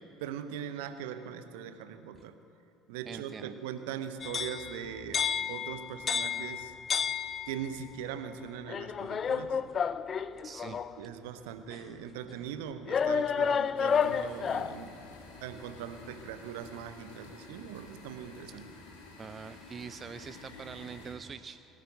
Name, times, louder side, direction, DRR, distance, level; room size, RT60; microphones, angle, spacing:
voice 1, 0.2-2.3 2.9-5.2 5.5-6.7 7.5-9.6 10.7-14.9 15.4-18.6, right 8 dB, 70° right, 10 dB, 0.8 m, -41 dB
voice 2, 3.1-3.6 10.4-10.8 18.5-18.6 19.2-21.7, right 6 dB, 35° right, 12 dB, 0.4 m, -44 dB
sound 1, 4.2-7.8 8.7-11.0 11.7-11.8 12.9-14.8, left 7 dB, 35° left, 0.4 m, -31 dB
sound 2, 13.7-21.1, left 3 dB, 70° left, 1.8 m, -51 dB
18.5 x 7.5 x 9.2 m, 2.8 s
figure-of-eight pair, 60°, 0 cm